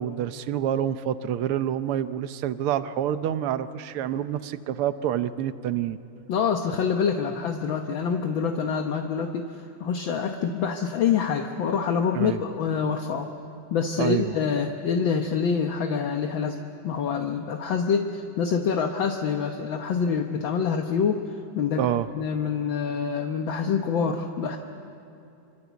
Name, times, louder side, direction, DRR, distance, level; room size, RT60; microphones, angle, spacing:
voice 1, 0.0-6.0 12.2-12.4 14.0-14.4 21.8-22.1, right 10 dB, 85° right, 11 dB, 1.7 m, -27 dB
voice 2, 6.3-13.3 13.7-16.6 16.8-21.2 21.5-24.6, left 6 dB, 65° left, 4 dB, 1.8 m, -26 dB
26.5 x 26.0 x 8.2 m, 2.8 s
omnidirectional pair, 2.4 m